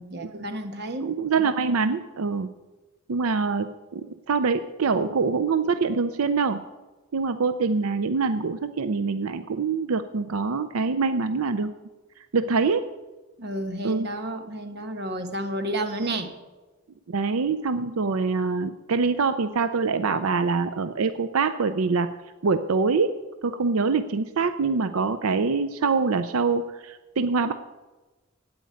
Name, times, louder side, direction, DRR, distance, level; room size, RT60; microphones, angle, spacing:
voice 1, 0.0-1.1 13.4-16.3, right 1 dB, 50° right, 6 dB, 1.2 m, -31 dB
voice 2, 1.0-2.5 3.1-6.6 7.1-11.7 12.3-12.9 13.8-14.1 17.1-22.1 22.4-23.1 23.4-27.5, right 4 dB, 85° right, 11 dB, 0.5 m, -24 dB
15.5 x 5.3 x 9.4 m, 1.2 s
head